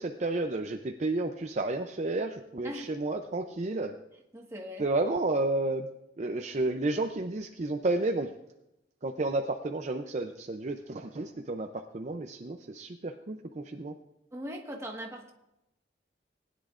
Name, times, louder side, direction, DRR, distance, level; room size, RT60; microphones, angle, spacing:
voice 1, 0.0-3.9 4.8-5.9 6.2-8.3 9.0-13.9, right 2 dB, 40° right, 5 dB, 0.5 m, -31 dB
voice 2, 4.3-4.9 14.3-15.3, equal, 15° right, 0 dB, 1.5 m, -40 dB
19.5 x 10.0 x 2.5 m, 0.89 s
head